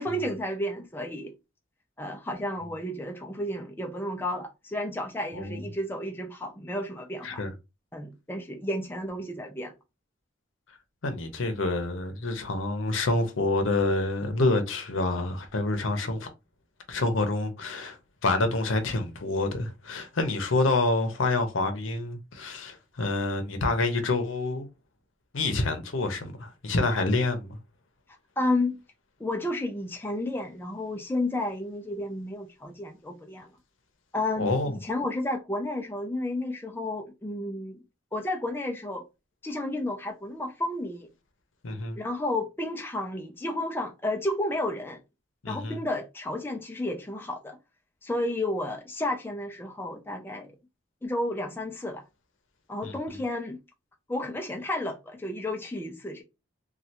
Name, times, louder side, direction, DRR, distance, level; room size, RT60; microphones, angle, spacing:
voice 1, 0.0-1.3 2.0-7.4 7.9-9.7 28.4-28.8 29.2-33.5 34.1-37.8 38.1-39.0 39.4-41.1 42.0-45.0 45.5-47.6 48.0-50.6 51.0-52.0 52.7-53.6 54.1-56.2, left 1 dB, 10° left, 0.4 m, -32 dB
voice 2, 5.3-5.6 7.2-7.5 11.0-16.3 16.9-18.0 18.2-24.7 25.3-27.6 34.4-34.7 41.6-42.0 45.4-45.8 52.8-52.9, left 2 dB, 75° left, 0.7 m, -27 dB
3.2 x 2.3 x 2.8 m
head